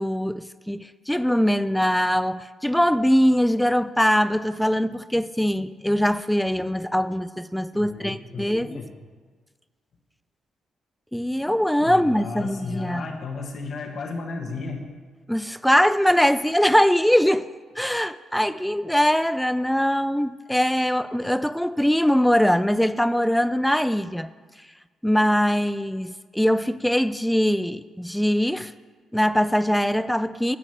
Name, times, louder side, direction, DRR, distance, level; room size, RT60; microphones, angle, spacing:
voice 1, 0.0-8.8 11.1-13.1 15.3-17.5 17.8-24.3 25.0-28.7 29.1-30.6, equal, 5° left, 14 dB, 0.3 m, -22 dB
voice 2, 7.8-8.9 11.8-14.9, left 4 dB, 55° left, 3 dB, 1.5 m, -34 dB
9.5 x 5.1 x 7.4 m, 1.4 s
cardioid pair, 90°, 0 cm